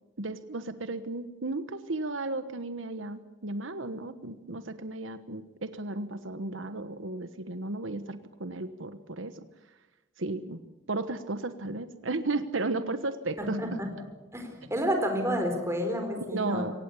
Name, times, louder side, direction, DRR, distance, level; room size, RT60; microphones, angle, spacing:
voice 1, 0.2-9.5 10.2-10.6 10.9-13.8 16.3-16.7, right 2 dB, 85° right, 11 dB, 1.2 m, -34 dB
voice 2, 13.4-13.9 14.3-16.7, equal, 15° right, 4 dB, 4.3 m, -30 dB
23.5 x 18.0 x 8.5 m, 1.0 s
head